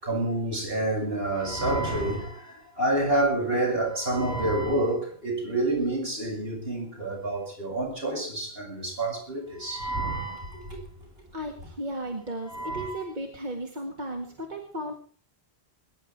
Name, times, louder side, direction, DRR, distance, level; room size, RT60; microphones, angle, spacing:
voice 1, 0.0-10.8 12.5-13.0, right 1 dB, 65° right, 7.1 m, -28 dB
voice 2, 11.3-14.9, right 1 dB, 45° right, 2.1 m, -35 dB
21.5 x 10.5 x 4.7 m
omnidirectional pair, 1.1 m